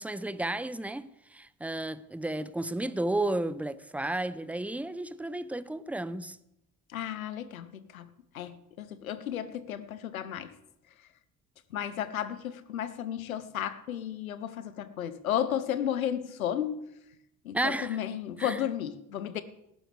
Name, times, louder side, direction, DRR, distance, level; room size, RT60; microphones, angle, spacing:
voice 1, 0.0-6.4 17.5-18.0 18.4-18.6, right 1 dB, 5° right, 0.7 m, -33 dB
voice 2, 6.9-7.7 7.9-8.1 8.3-10.5 11.7-16.8 17.4-19.4, left 10 dB, 85° left, 0.8 m, -33 dB
18.5 x 15.0 x 3.4 m
figure-of-eight pair, 45°, 40 cm